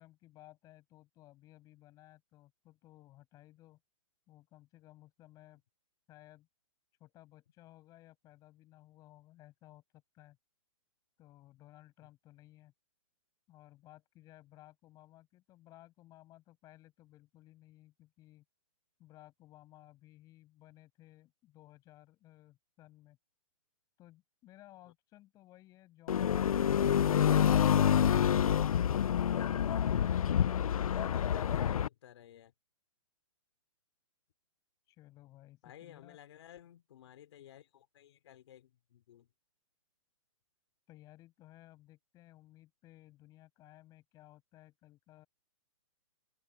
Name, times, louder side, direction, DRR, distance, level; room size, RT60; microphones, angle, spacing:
voice 1, 0.0-3.8 4.3-5.6 6.1-6.5 7.0-10.4 11.2-12.7 13.5-18.4 19.0-23.2 24.0-27.6 34.9-36.2 40.9-45.3, left 16 dB, 20° left, 7.8 m, -58 dB
sound 1, 26.1-31.9, left 9 dB, 85° left, 0.6 m, -27 dB
voice 2, 30.6-32.5 35.6-39.3, left 11 dB, 50° left, 4.2 m, -55 dB
hypercardioid pair, 160°, 18 cm